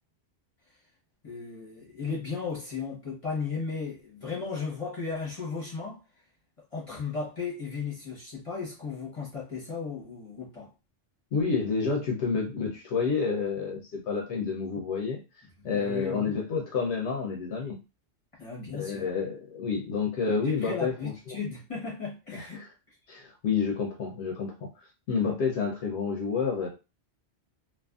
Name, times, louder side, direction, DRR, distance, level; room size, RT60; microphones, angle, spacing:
voice 1, 1.2-6.0 6.7-10.7 15.7-16.3 18.4-19.1 20.4-22.6, left 5 dB, 30° left, 1.0 m, -35 dB
voice 2, 11.3-15.2 15.6-17.8 18.7-21.4 22.3-22.6 23.1-24.7 25.1-26.7, left 5 dB, 70° left, 0.9 m, -29 dB
2.6 x 2.5 x 2.3 m
omnidirectional pair, 1.2 m